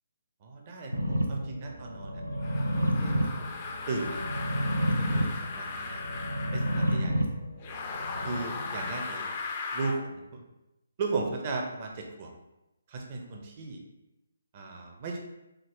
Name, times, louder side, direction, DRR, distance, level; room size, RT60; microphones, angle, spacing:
voice 1, 0.4-2.2 2.8-4.2 4.9-6.2 6.5-7.2 8.2-9.3 9.7-10.4 11.0-12.3 12.9-13.8 14.5-15.2, right 3 dB, 35° right, 0 dB, 0.5 m, -36 dB
sound 1, 0.9-8.9, equal, 85° right, 0.5 m, -31 dB
sound 2, 2.4-7.1 7.6-10.0, left 4 dB, 30° left, 0.3 m, -37 dB
3.6 x 2.1 x 3.0 m, 0.95 s
figure-of-eight pair, 140°, 0 cm